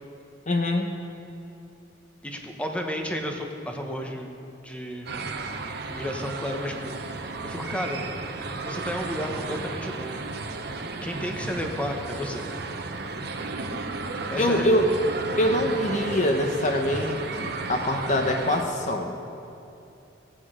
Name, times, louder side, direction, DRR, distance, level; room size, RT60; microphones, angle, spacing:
voice 1, 0.5-0.9 14.4-14.9 15.4-19.2, left 1 dB, 40° left, 3 dB, 0.8 m, -24 dB
voice 2, 2.2-4.3 4.6-5.3 5.9-8.0 8.6-10.3 11.0-12.4 14.3-14.8, equal, 5° left, 2 dB, 1.0 m, -32 dB
sound 1, 5.1-18.6, right 3 dB, 55° right, 0.9 m, -33 dB
17.0 x 8.8 x 5.0 m, 2.8 s
head